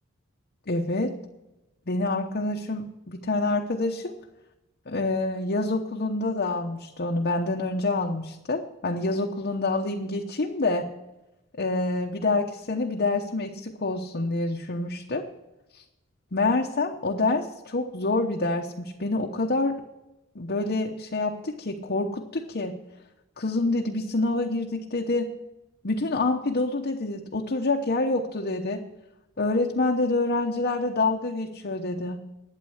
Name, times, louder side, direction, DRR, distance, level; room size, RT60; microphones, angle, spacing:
voice 1, 0.7-1.1 1.9-4.1 4.9-10.9 11.6-15.3 15.7-15.8 16.3-19.7 20.3-22.8 23.4-25.3 25.8-28.8 29.4-32.2, left 2 dB, 50° left, 1 dB, 1.0 m, -27 dB
12.0 x 9.4 x 6.4 m, 0.98 s
head